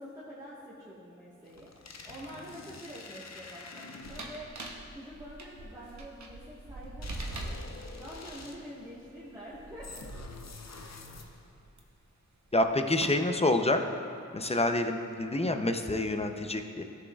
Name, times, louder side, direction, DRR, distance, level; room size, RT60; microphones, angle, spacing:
voice 1, 0.0-4.5 4.9-7.6 8.0-10.1, equal, 15° right, -9 dB, 1.4 m, -46 dB
sound 1, 1.5-4.6 7.0-8.8 9.8-11.6, left 4 dB, 65° left, 0.7 m, -47 dB
sound 2, 4.0-11.8 12.5-13.1, right 2 dB, 70° right, 0.9 m, -43 dB
voice 2, 12.5-13.8 14.3-16.8, left 2 dB, 20° left, 5 dB, 0.6 m, -27 dB
14.0 x 6.2 x 2.4 m, 2.6 s
cardioid pair, 40°, 29 cm